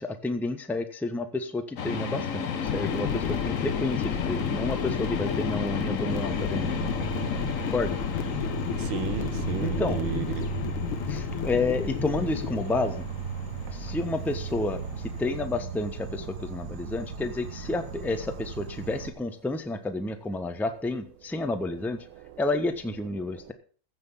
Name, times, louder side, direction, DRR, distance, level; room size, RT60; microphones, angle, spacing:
voice 1, 0.0-6.8 7.6-8.0 9.6-10.0 11.1-13.1 13.7-22.1 22.4-23.5, left 2 dB, ahead, 0.7 m, -30 dB
sound 1, 1.7-15.4, left 7 dB, 50° left, 1.2 m, -34 dB
sound 2, 2.6-12.6, left 8 dB, 80° left, 1.9 m, -32 dB
Insect, 6.1-19.1, right 7 dB, 55° right, 1.8 m, -37 dB
voice 2, 8.8-10.4 22.1-22.4 23.3-23.5, right 10 dB, 80° right, 1.8 m, -34 dB
15.5 x 6.2 x 7.2 m
omnidirectional pair, 2.3 m